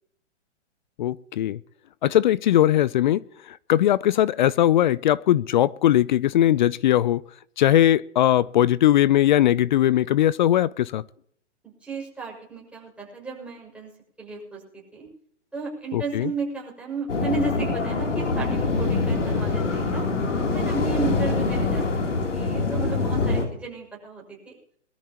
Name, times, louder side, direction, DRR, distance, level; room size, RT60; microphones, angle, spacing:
voice 1, 1.0-1.6 2.0-3.2 3.7-7.2 7.6-11.0 15.9-16.3, left 12 dB, 40° left, 0.5 m, -20 dB
voice 2, 11.6-13.9 14.2-15.1 15.5-20.0 20.5-24.5, right 4 dB, 5° right, 6.1 m, -34 dB
sound 1, 17.1-23.4, left 3 dB, 80° left, 3.3 m, -24 dB
22.0 x 13.5 x 3.0 m
hypercardioid pair, 130°, 36 cm